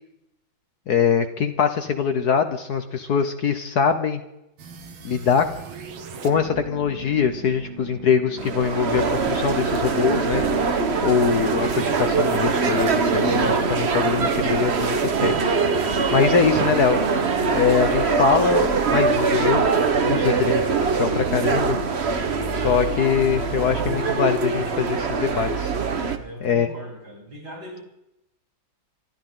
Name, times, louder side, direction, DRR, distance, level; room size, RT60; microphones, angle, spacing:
voice 1, 0.9-4.2 5.0-5.5 6.2-10.4 11.0-15.3 16.1-17.0 17.5-19.6 20.0-21.8 22.6-25.7 26.4-26.7, left 6 dB, 55° left, 8 dB, 1.3 m, -22 dB
sound 1, 4.6-15.5, right 5 dB, 85° right, 2.2 m, -41 dB
sound 2, 8.4-26.2, right 4 dB, 40° right, 1.1 m, -22 dB
voice 2, 26.2-27.8, equal, 65° right, -3 dB, 5.6 m, -40 dB
26.5 x 13.0 x 3.8 m, 0.86 s
omnidirectional pair, 2.2 m